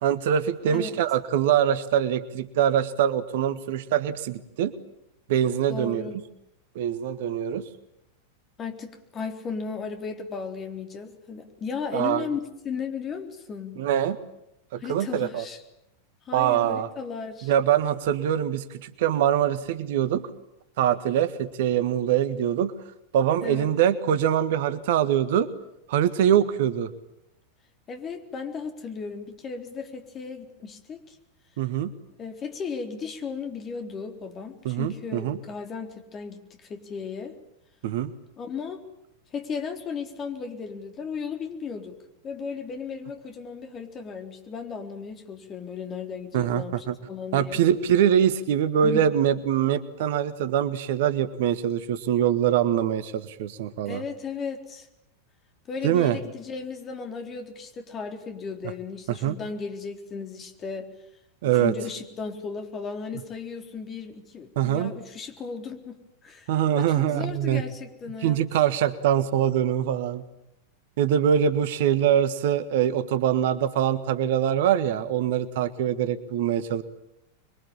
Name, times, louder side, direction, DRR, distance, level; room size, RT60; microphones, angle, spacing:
voice 1, 0.0-4.7 5.3-6.0 6.7-7.6 11.9-12.2 13.8-14.2 14.7-15.4 16.3-16.9 17.4-20.3 20.8-22.7 23.1-25.5 25.9-26.9 31.6-31.9 34.6-35.4 37.8-38.1 46.3-46.9 47.3-54.0 55.8-56.2 59.1-59.3 61.4-61.7 64.5-64.9 66.5-67.6 68.2-70.2 71.0-76.8, right 10 dB, 55° right, 14 dB, 1.5 m, -23 dB
voice 2, 5.7-6.2 8.6-13.7 14.8-15.6 16.3-17.5 23.4-23.7 27.9-31.2 32.2-37.4 38.4-38.8 39.3-42.0 42.2-47.6 48.8-49.1 53.8-54.9 55.7-60.9 61.5-65.9 66.2-66.5 66.7-68.4, left 5 dB, 25° left, 6 dB, 4.0 m, -35 dB
26.5 x 23.0 x 8.9 m, 0.84 s
figure-of-eight pair, 90°, 0 cm